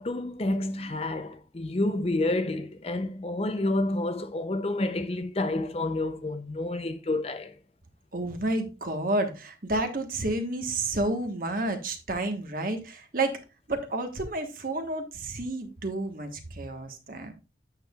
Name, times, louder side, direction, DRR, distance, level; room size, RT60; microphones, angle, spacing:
voice 1, 0.0-7.6, left 2 dB, 30° left, 0.5 m, -29 dB
voice 2, 8.1-13.4 13.7-17.3, right 2 dB, 50° right, 1.3 m, -30 dB
8.8 x 7.2 x 2.3 m
head